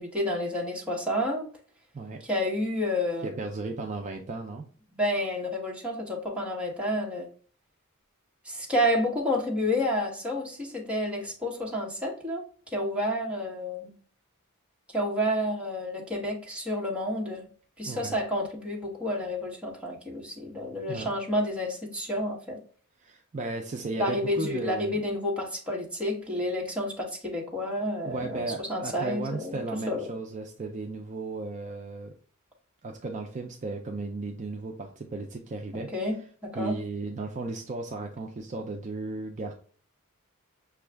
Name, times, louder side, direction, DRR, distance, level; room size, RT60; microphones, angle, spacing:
voice 1, 0.0-1.5 2.2-3.4 4.9-7.3 8.4-12.4 12.7-13.9 14.9-17.5 17.8-22.6 24.0-29.6 29.9-30.0 35.7-36.2 36.4-36.8, left 1 dB, 5° right, -3 dB, 1.1 m, -30 dB
voice 2, 3.2-4.7 17.9-18.2 20.9-21.1 23.0-25.0 28.1-32.1 32.8-35.9 36.5-39.5, right 3 dB, 35° right, 3 dB, 0.4 m, -35 dB
6.0 x 2.3 x 3.3 m, 0.44 s
head